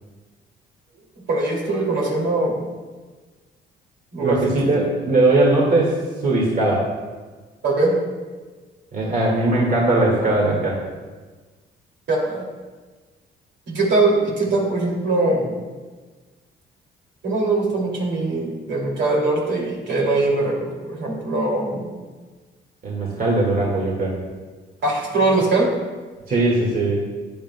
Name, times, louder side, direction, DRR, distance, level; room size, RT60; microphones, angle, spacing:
voice 1, 1.3-2.7 4.1-4.8 7.6-8.0 12.1-12.4 13.7-15.7 17.2-21.9 24.8-25.7, right 2 dB, 65° right, -2 dB, 2.7 m, -21 dB
voice 2, 4.2-6.9 8.9-10.8 22.8-24.2 26.3-27.0, right 2 dB, 45° right, -3 dB, 1.9 m, -19 dB
13.5 x 9.3 x 2.3 m, 1.4 s
cardioid pair, 90°, 20 cm